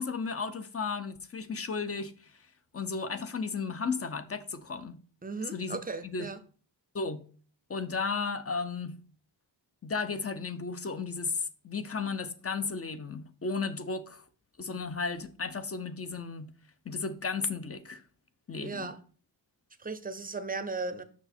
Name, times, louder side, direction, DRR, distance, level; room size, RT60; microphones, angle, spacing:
voice 1, 0.0-2.3 2.7-5.0 5.5-5.8 6.0-6.3 6.9-7.2 7.7-9.0 9.8-14.2 14.6-16.5 16.9-18.0 18.5-18.9, left 4 dB, 35° left, 0.6 m, -34 dB
voice 2, 5.2-6.4 18.6-19.0 19.8-21.0, right 3 dB, 20° right, 0.6 m, -36 dB
6.1 x 5.8 x 4.4 m
wide cardioid pair, 135°, 43 cm